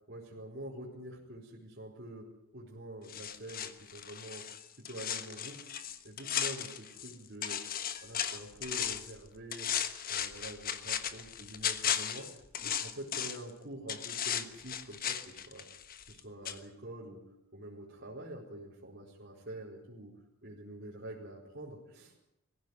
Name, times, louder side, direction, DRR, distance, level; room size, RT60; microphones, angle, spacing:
voice 1, 0.1-2.3 2.5-4.4 4.9-5.6 6.0-7.6 8.0-9.7 10.1-12.3 12.6-15.6 16.1-17.2 17.5-20.1 20.4-22.1, right 1 dB, 45° right, -6 dB, 4.7 m, -46 dB
sound 1, 3.1-7.1 7.4-9.1 9.5-13.5 13.9-16.2 16.4-16.6, left 9 dB, 40° left, 1.3 m, -36 dB
21.0 x 16.0 x 9.7 m, 0.80 s
head